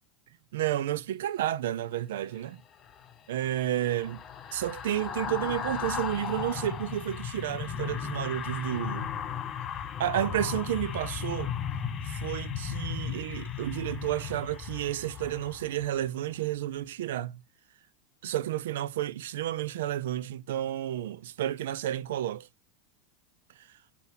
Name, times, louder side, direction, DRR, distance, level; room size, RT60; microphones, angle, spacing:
voice 1, 0.5-2.6 3.3-4.2 4.5-9.1 10.0-11.5 12.0-17.3 18.2-22.5, right 12 dB, 75° right, 0.5 m, -31 dB
sound 1, 2.7-16.1 16.4-16.6, left 8 dB, 35° left, 1.9 m, -36 dB
8.0 x 2.9 x 5.7 m
hypercardioid pair, 95°, 0 cm